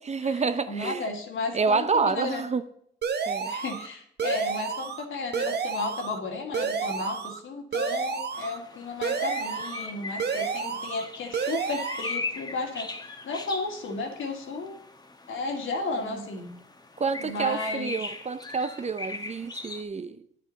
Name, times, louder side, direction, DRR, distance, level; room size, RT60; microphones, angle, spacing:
voice 1, 0.0-1.1 1.5-2.7 3.3-3.5 16.0-16.3 17.0-20.3, right 5 dB, 35° right, 13 dB, 0.6 m, -28 dB
voice 2, 0.7-2.4 3.5-14.8 15.3-16.5 17.2-18.0, left 3 dB, 75° left, 2 dB, 2.3 m, -33 dB
sound 1, 3.0-3.9 4.2-5.0 5.3-6.2 6.5-7.4 7.7-8.6 9.0-9.9 10.2-11.1 11.3-12.2, right 6 dB, 55° right, 1.0 m, -30 dB
sound 2, 8.3-19.8, left 3 dB, 20° left, 1.1 m, -39 dB
9.7 x 8.6 x 4.1 m, 0.67 s
cardioid pair, 95°, 20 cm